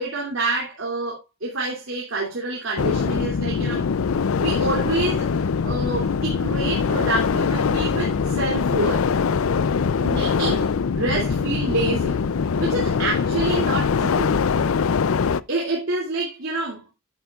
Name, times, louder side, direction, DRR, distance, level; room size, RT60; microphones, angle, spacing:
voice 1, 0.0-3.9 4.4-9.1 10.0-10.7 10.9-12.2 12.6-14.3 15.5-16.9, right 2 dB, 70° right, 2.8 m, -27 dB
sound 1, 2.8-15.4, left 5 dB, 80° left, 0.5 m, -22 dB
10.5 x 9.8 x 2.4 m
head